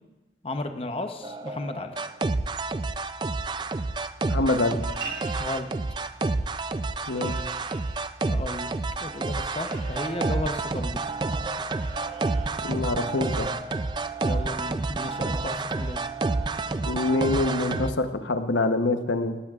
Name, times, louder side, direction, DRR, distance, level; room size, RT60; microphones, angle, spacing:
voice 1, 0.4-2.0 5.4-5.7 8.3-8.7 9.0-11.0 14.2-16.0, left 2 dB, 30° left, 6 dB, 0.8 m, -34 dB
sound 1, 1.2-17.9, right 3 dB, 25° right, 0.3 m, -29 dB
voice 2, 4.3-4.8 7.1-7.4 12.6-13.5 16.8-19.4, left 2 dB, 90° left, 7 dB, 0.9 m, -25 dB
sound 2, 4.7-5.6 7.0-8.0 9.4-10.6 11.6-12.7, right 2 dB, 55° right, 2.7 m, -46 dB
sound 3, 5.0-10.0, right 5 dB, 90° right, 5.0 m, -44 dB
18.0 x 16.0 x 2.4 m, 1.1 s
head